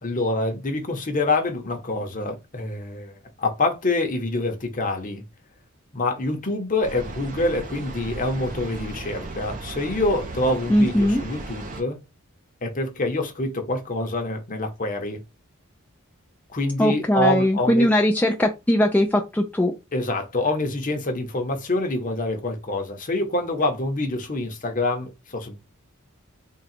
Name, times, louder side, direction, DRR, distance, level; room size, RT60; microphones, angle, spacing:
voice 1, 0.0-5.2 5.9-12.0 12.6-15.2 16.5-17.9 19.9-25.6, left 2 dB, 40° left, 0.9 m, -26 dB
sound 1, 6.8-11.8, right 2 dB, 40° right, 0.7 m, -36 dB
voice 2, 10.7-11.2 16.8-19.7, left 1 dB, 10° left, 0.4 m, -20 dB
3.7 x 2.3 x 4.3 m
head